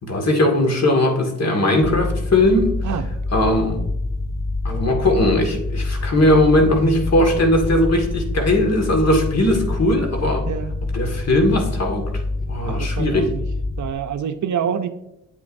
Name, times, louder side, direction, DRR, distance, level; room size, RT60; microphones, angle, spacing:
voice 1, 0.0-2.7 3.3-3.8 4.6-10.4 10.9-12.1 12.5-13.3, left 1 dB, 45° left, 3 dB, 2.0 m, -19 dB
sound 1, 1.8-13.9, left 2 dB, 20° left, 0.3 m, -26 dB
voice 2, 10.5-10.8 12.7-13.4 13.8-14.9, right 8 dB, 50° right, 9 dB, 0.7 m, -26 dB
8.5 x 8.1 x 2.6 m, 0.84 s
supercardioid pair, 60°, 37 cm